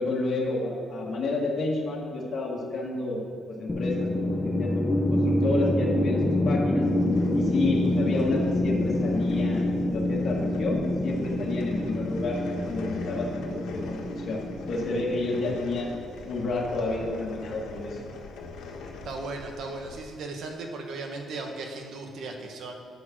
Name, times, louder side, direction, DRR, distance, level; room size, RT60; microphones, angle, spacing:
voice 1, 0.0-4.2 4.6-6.9 7.3-16.0 16.2-18.0, left 2 dB, 45° left, -3 dB, 1.9 m, -30 dB
sound 1, 3.7-15.8, left 1 dB, 20° left, 0.8 m, -27 dB
sound 2, 6.8-20.0, left 3 dB, 90° left, 1.4 m, -42 dB
voice 2, 19.0-22.7, right 3 dB, 65° right, 3 dB, 1.4 m, -36 dB
8.8 x 6.3 x 6.1 m, 2.5 s
cardioid pair, 110°, 0 cm